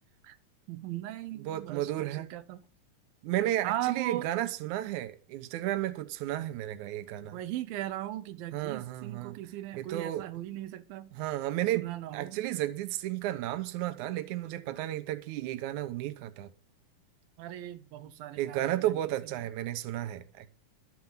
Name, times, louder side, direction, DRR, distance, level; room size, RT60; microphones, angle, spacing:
voice 1, 0.7-2.6 3.6-4.3 7.3-11.1 11.6-12.4 17.4-19.0, right 14 dB, 90° right, 2.6 m, -38 dB
voice 2, 1.4-2.3 3.2-7.4 8.5-9.4 9.8-10.3 11.1-11.9 12.1-16.5 18.4-20.5, right 14 dB, 70° right, 2.3 m, -33 dB
12.5 x 7.8 x 7.2 m
omnidirectional pair, 4.0 m